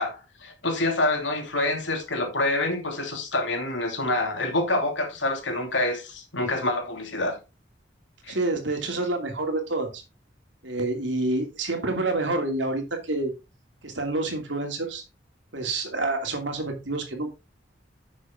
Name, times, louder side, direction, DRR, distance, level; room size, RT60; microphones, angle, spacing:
voice 1, 0.0-7.4 8.2-8.4, left 2 dB, 85° left, 2.8 m, -27 dB
voice 2, 8.3-10.0 10.6-13.3 13.8-15.0 15.5-17.3, right 2 dB, 80° right, 2.6 m, -28 dB
9.9 x 6.4 x 3.6 m
head